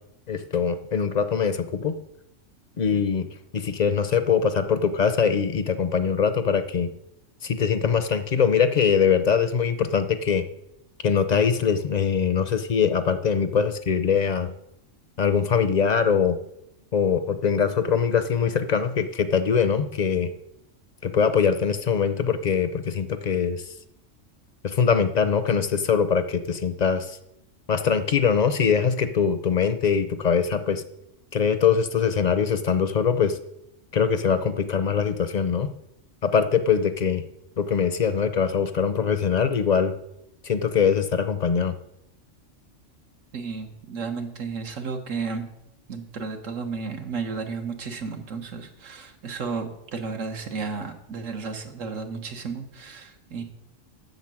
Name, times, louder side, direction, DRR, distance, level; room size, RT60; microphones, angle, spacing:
voice 1, 0.3-1.9 2.8-3.3 3.5-6.9 7.4-10.4 11.0-14.5 15.2-16.4 16.9-20.3 21.0-23.6 24.6-27.2 27.7-30.8 31.3-33.4 33.9-35.7 36.2-37.2 37.6-39.9 40.4-41.7, left 6 dB, 50° left, 11 dB, 0.5 m, -22 dB
voice 2, 43.3-45.5 45.9-53.4, right 5 dB, 85° right, 4 dB, 1.5 m, -33 dB
8.1 x 6.5 x 7.5 m, 0.82 s
omnidirectional pair, 1.3 m